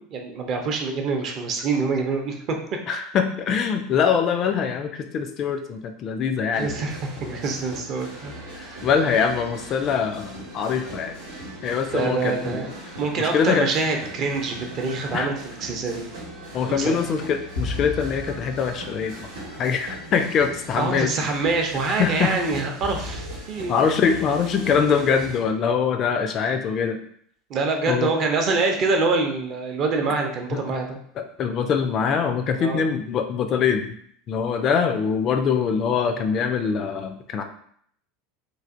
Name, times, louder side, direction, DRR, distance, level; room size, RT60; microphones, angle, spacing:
voice 1, 0.0-2.6 6.5-8.3 8.6-8.9 11.9-12.7 13.0-16.1 16.7-17.0 20.8-23.8 27.5-31.0 32.5-32.8, right 4 dB, 45° right, 3 dB, 0.5 m, -25 dB
voice 2, 2.9-6.7 8.6-11.2 11.6-12.6 13.2-13.7 15.1-15.3 16.5-19.2 19.6-21.1 22.0-22.4 23.7-27.0 27.9-28.1 30.5-30.6 31.4-34.0 34.3-37.4, left 6 dB, 40° left, 7 dB, 0.3 m, -23 dB
sound 1, 6.5-25.4, right 1 dB, 70° right, 0.8 m, -39 dB
sound 2, 17.5-20.3 20.8-20.9 22.8-23.4, left 2 dB, 90° left, 0.9 m, -34 dB
3.2 x 2.4 x 2.5 m, 0.63 s
figure-of-eight pair, 75°, 0 cm